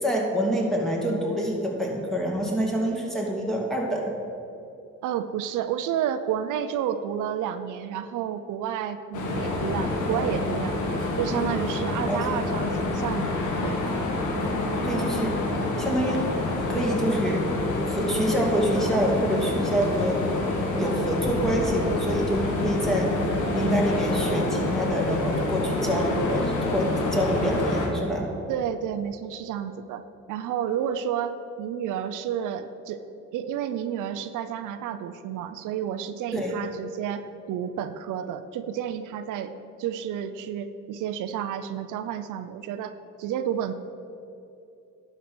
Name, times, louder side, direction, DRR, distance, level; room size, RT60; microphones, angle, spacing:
voice 1, 0.0-4.1 12.1-12.2 14.8-15.3 15.8-16.2 16.7-17.5 17.8-20.2 20.8-23.1 23.5-28.3 36.3-36.5, right 1 dB, ahead, -2 dB, 2.3 m, -26 dB
voice 2, 5.0-10.9 11.2-13.8 28.5-30.0 30.3-33.0 33.3-39.5 39.8-43.7, right 9 dB, 85° right, 10 dB, 0.6 m, -31 dB
sound 1, 9.1-27.9, left 2 dB, 80° left, 1.6 m, -27 dB
11.0 x 5.5 x 6.2 m, 2.8 s
cardioid pair, 90°, 30 cm